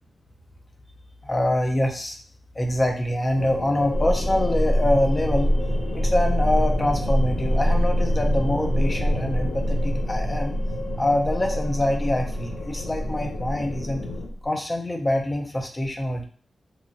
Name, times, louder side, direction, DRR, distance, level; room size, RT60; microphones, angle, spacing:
voice 1, 1.2-2.2 2.5-5.5 5.9-10.5 11.0-14.0 14.4-16.2, left 1 dB, 25° left, 3 dB, 0.5 m, -25 dB
sound 1, 3.3-14.3, left 2 dB, 85° left, 0.7 m, -34 dB
sound 2, 3.9-14.4, equal, 60° left, 1.0 m, -25 dB
2.9 x 2.2 x 2.6 m, 0.42 s
wide cardioid pair, 95°, 0 cm